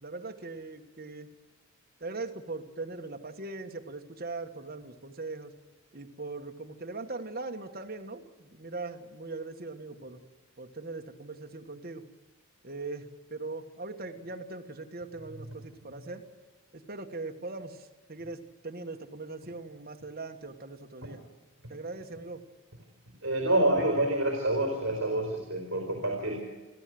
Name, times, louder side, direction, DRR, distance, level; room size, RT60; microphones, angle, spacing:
voice 1, 0.0-1.3 2.0-5.5 5.9-10.2 10.6-12.0 12.6-16.2 16.7-21.2 21.7-22.4, right 3 dB, 45° right, 4 dB, 1.6 m, -40 dB
voice 2, 23.2-26.4, right 1 dB, 60° right, 1 dB, 4.2 m, -27 dB
30.0 x 12.0 x 7.8 m, 1.2 s
head